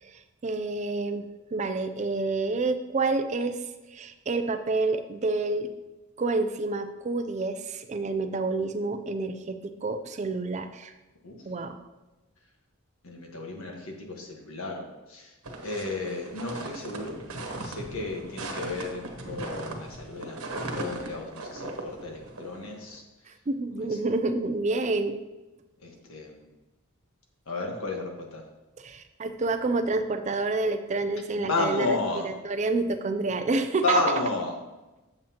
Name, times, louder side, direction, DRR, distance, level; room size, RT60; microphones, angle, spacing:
voice 1, 0.0-3.6 3.9-5.7 6.2-10.9 11.4-11.8 23.5-25.2 28.8-32.0 32.2-34.0, right 3 dB, 35° right, 9 dB, 0.4 m, -28 dB
voice 2, 13.0-15.3 15.6-17.2 17.6-23.0 23.8-23.9 25.8-26.5 27.5-28.4 31.4-32.3 33.8-34.5, left 2 dB, 75° left, 1 dB, 1.4 m, -32 dB
sound 1, 15.4-23.0, right 2 dB, 90° right, 1.1 m, -38 dB
7.6 x 7.5 x 2.9 m, 1.1 s
head